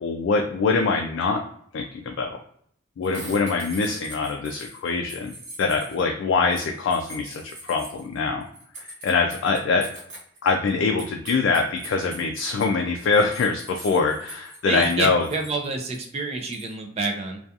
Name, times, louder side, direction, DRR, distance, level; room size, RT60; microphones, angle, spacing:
voice 1, 0.0-1.4 1.7-2.4 3.0-5.3 5.6-8.4 8.8-9.8 10.4-15.3, left 4 dB, 65° left, 2 dB, 0.3 m, -24 dB
sound 1, 3.0-6.0 6.5-10.7 11.0-12.7 13.1-14.9 15.2-15.7 15.9-16.0 16.4-16.7, right 1 dB, 70° right, 1.2 m, -42 dB
voice 2, 14.6-17.4, right 3 dB, 30° right, 3 dB, 0.4 m, -28 dB
2.3 x 2.3 x 2.6 m, 0.64 s
head